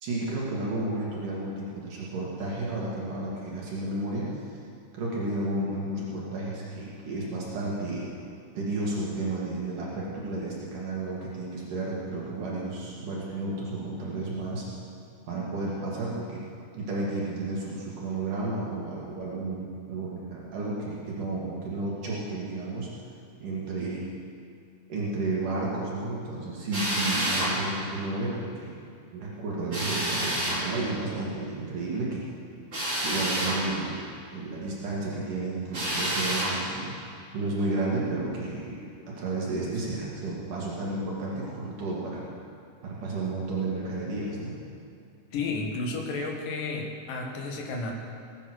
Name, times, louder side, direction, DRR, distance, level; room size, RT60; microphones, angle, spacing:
voice 1, 0.0-4.6 4.9-8.1 8.6-14.7 15.2-16.4 16.8-22.9 23.4-24.0 24.9-28.8 29.1-32.2 33.0-36.9 37.3-38.8 39.1-42.2 42.8-44.6, right 2 dB, 70° right, -5 dB, 3.6 m, -32 dB
Drill, 26.7-27.5 29.7-30.6 32.7-33.6 35.7-36.5, right 1 dB, 30° right, 5.3 m, -28 dB
voice 2, 45.3-47.9, left 3 dB, 80° left, 1 dB, 3.2 m, -32 dB
19.5 x 9.7 x 6.4 m, 2.4 s
omnidirectional pair, 3.8 m